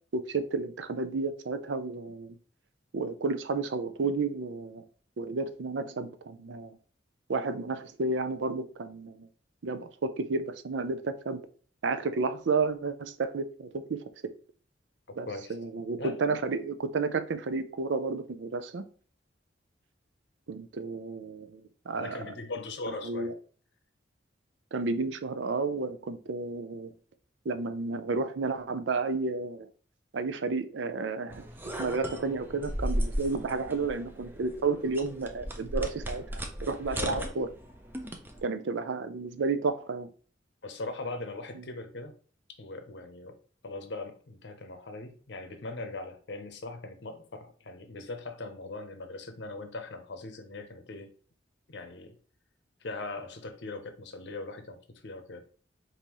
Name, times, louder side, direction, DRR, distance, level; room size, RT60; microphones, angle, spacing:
voice 1, 0.1-2.4 2.9-4.8 5.2-6.8 7.3-9.3 9.6-11.4 11.8-14.0 15.2-18.8 20.5-22.3 22.9-23.3 24.7-26.9 27.5-29.7 30.1-31.5 31.8-37.5 38.4-40.1 41.5-41.6, right 3 dB, 75° right, 0.5 m, -32 dB
voice 2, 15.1-15.6 16.0-16.2 22.0-23.3 36.9-37.3 40.6-42.1 42.6-43.4 43.6-51.1 51.7-52.1 52.8-55.4, left 2 dB, 65° left, 0.7 m, -40 dB
sound 1, 31.3-38.4, equal, 10° right, 0.5 m, -36 dB
5.3 x 2.7 x 3.0 m
head